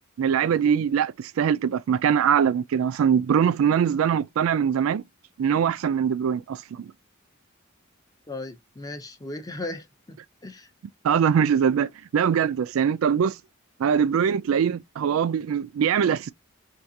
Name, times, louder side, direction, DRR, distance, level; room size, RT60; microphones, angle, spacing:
voice 1, 0.2-5.0 5.4-6.9 11.0-13.4 13.8-16.3, right 7 dB, 70° right, 0.3 m, -22 dB
voice 2, 8.3-10.7, left 2 dB, 15° left, 0.5 m, -37 dB
4.5 x 2.4 x 2.7 m
head